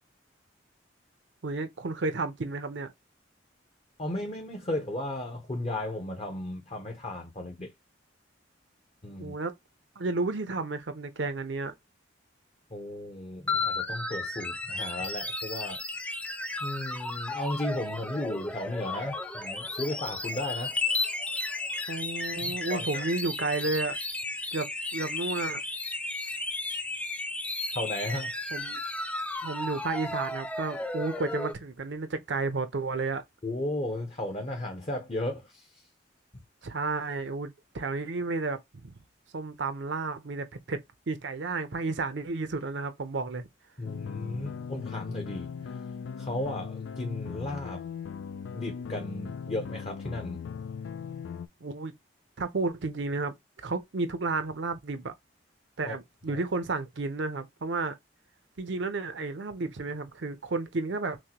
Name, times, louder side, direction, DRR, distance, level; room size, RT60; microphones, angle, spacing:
voice 1, 1.4-2.9 9.2-9.5 10.0-11.7 21.9-24.0 24.5-25.6 28.5-28.8 29.4-33.2 36.6-38.9 39.3-40.8 41.1-43.5 51.6-51.9 52.4-53.3 53.6-55.1 55.8-57.9 58.6-61.2, right 3 dB, 75° right, 0.6 m, -32 dB
voice 2, 4.0-7.7 9.0-9.4 12.7-15.8 16.6-20.8 22.4-23.0 27.6-28.4 33.4-35.9 43.8-45.8 46.2-47.8 48.5-50.4 55.8-55.9 56.3-56.4, left 1 dB, 35° left, 0.7 m, -35 dB
sound 1, 13.5-31.5, left 2 dB, 5° left, 0.3 m, -34 dB
sound 2, 43.8-51.5, left 6 dB, 80° left, 0.3 m, -39 dB
6.1 x 2.2 x 2.9 m
head